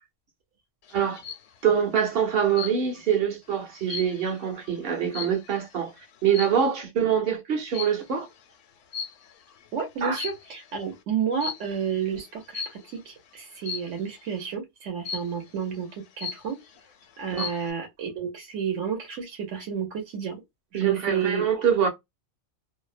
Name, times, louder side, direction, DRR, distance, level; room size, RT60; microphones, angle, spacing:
sound 1, 0.9-1.5 2.6-3.1 3.5-5.7 6.3-6.7 7.7-8.1 8.9-9.5 10.0-10.7 11.4-11.8 12.5-12.9 13.7-14.1 15.1-15.5 15.9-16.0 16.2-16.8 17.2-17.7, left 6 dB, 75° left, 0.9 m, -36 dB
voice 1, 1.6-5.9 6.2-8.3 10.0-10.2 17.3-17.5 20.7-21.9, right 8 dB, 55° right, 0.9 m, -24 dB
voice 2, 9.7-16.6 17.2-20.4 20.7-21.5, right 7 dB, 75° right, 1.1 m, -31 dB
2.7 x 2.0 x 2.4 m
omnidirectional pair, 1.3 m